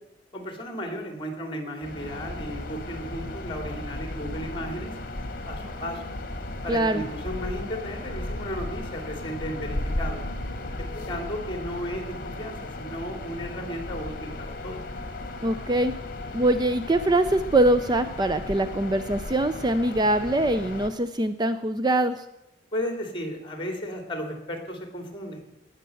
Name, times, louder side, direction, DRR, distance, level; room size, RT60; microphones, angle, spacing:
voice 1, 0.3-5.0 5.5-6.0 6.6-10.2 10.8-14.8 22.7-25.4, equal, 30° left, 5 dB, 2.8 m, -34 dB
sound 1, 1.8-20.9, left 1 dB, 55° left, 1.6 m, -35 dB
voice 2, 6.7-7.0 15.4-15.9 16.3-22.2, right 1 dB, 25° right, 11 dB, 0.5 m, -23 dB
18.5 x 6.7 x 7.7 m, 0.88 s
head